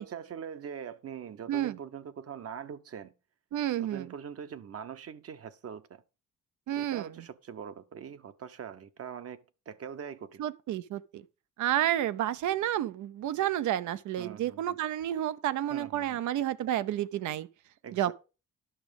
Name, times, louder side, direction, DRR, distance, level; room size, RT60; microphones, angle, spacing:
voice 1, 0.0-3.1 3.8-6.0 6.8-10.5 14.2-14.8 15.7-16.2 17.8-18.1, right 8 dB, 50° right, 1.0 m, -42 dB
voice 2, 3.5-4.1 6.7-7.1 10.4-11.2 11.6-17.5 17.9-18.1, right 12 dB, 75° right, 0.7 m, -30 dB
11.0 x 6.2 x 5.2 m
cardioid pair, 90°, 30 cm